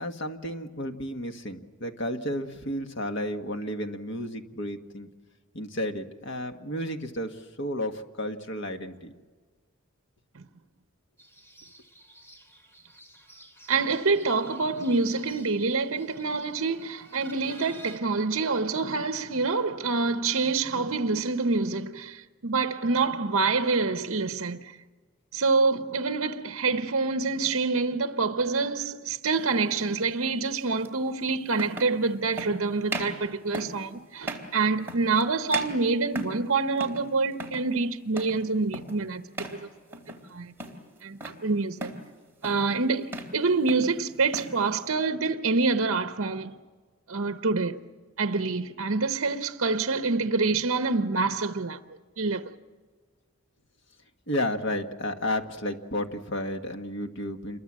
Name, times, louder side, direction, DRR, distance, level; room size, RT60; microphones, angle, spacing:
voice 1, 0.0-5.1 5.5-9.1 54.3-57.6, left 1 dB, 55° left, 1.7 m, -32 dB
sound 1, 11.2-18.0, right 1 dB, 10° left, 3.1 m, -51 dB
voice 2, 13.7-24.7 25.3-39.2 39.5-39.6 40.3-40.5 41.0-41.9 42.4-46.6 47.1-47.8 48.2-51.8 52.2-52.5, right 4 dB, 65° right, 0.9 m, -26 dB
sound 2, 29.3-29.5 30.8-30.9 31.5-32.0 32.4-32.6 32.9-33.2 33.5-33.8 34.2-34.5 34.9-35.2 35.5-36.5 36.8-37.1 37.3-37.7 38.2-38.4 38.7-39.0 39.3-39.6 39.9-40.3 40.6-41.4 41.8-42.1 42.4-42.7 43.0-43.4 43.7-44.6, right 2 dB, 10° right, 3.3 m, -37 dB
28.0 x 23.0 x 7.6 m
head